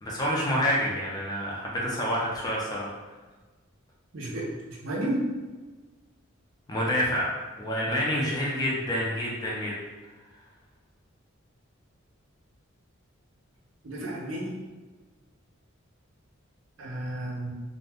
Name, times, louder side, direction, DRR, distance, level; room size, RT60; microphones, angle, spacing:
voice 1, 0.0-2.9 6.7-7.3 7.6-9.7, equal, 20° left, -4 dB, 0.5 m, -28 dB
voice 2, 4.1-5.3 13.8-14.6 16.8-17.5, right 1 dB, 65° right, -3 dB, 0.6 m, -32 dB
2.4 x 2.2 x 3.4 m, 1.3 s
head